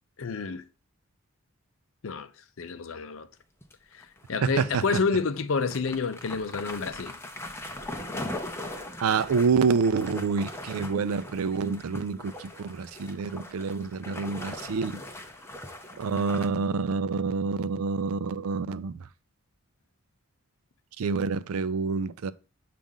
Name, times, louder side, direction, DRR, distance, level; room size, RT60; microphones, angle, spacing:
voice 1, 0.2-0.6 2.0-2.3 2.6-3.3 3.9-7.1, left 4 dB, 60° left, 0.5 m, -29 dB
sound 1, 3.6-4.3 4.7-4.8 5.3-5.4 5.7-16.5, left 1 dB, 10° left, 0.5 m, -40 dB
voice 2, 4.4-4.8 9.0-15.0 16.0-19.0 21.0-22.3, right 5 dB, 75° right, 0.4 m, -27 dB
7.3 x 2.5 x 5.3 m
head